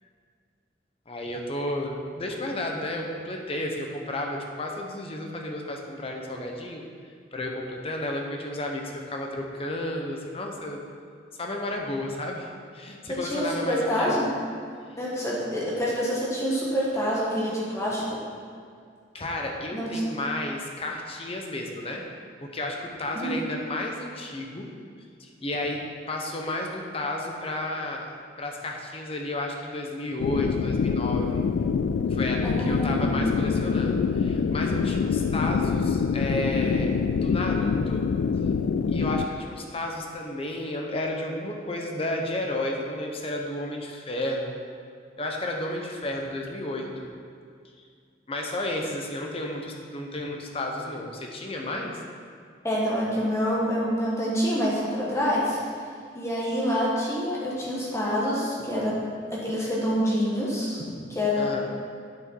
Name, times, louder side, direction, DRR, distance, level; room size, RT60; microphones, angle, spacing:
voice 1, 1.1-6.8 7.3-10.8 11.3-14.2 19.1-22.0 22.4-24.7 25.2-31.4 32.1-38.1 38.9-44.5 45.2-47.1 48.3-52.0 61.4-61.6, left 1 dB, 30° left, 1 dB, 0.8 m, -32 dB
voice 2, 13.1-14.3 14.9-18.2 19.7-20.0 23.1-23.3 32.4-33.2 52.6-55.6 56.1-59.0 59.3-61.6, equal, 15° left, -6 dB, 1.4 m, -27 dB
sound 1, 30.2-39.3, left 5 dB, 80° left, 0.3 m, -25 dB
8.6 x 6.2 x 4.6 m, 2.2 s
head